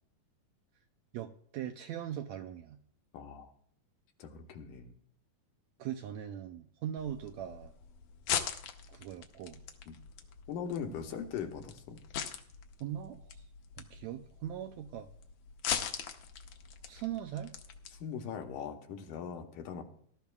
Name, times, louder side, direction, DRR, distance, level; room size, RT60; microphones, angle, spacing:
voice 1, 1.1-2.8 5.8-7.7 8.9-9.6 12.8-13.4 13.8-15.1 16.8-17.6, right 10 dB, 80° right, 6 dB, 1.6 m, -40 dB
voice 2, 3.1-3.5 4.2-4.9 9.9-10.0 10.5-12.0 17.9-19.8, left 7 dB, 85° left, 4 dB, 2.7 m, -40 dB
sound 1, 7.0-18.0, left 8 dB, 70° left, 1.7 m, -41 dB
19.0 x 12.0 x 2.4 m, 0.63 s
omnidirectional pair, 3.7 m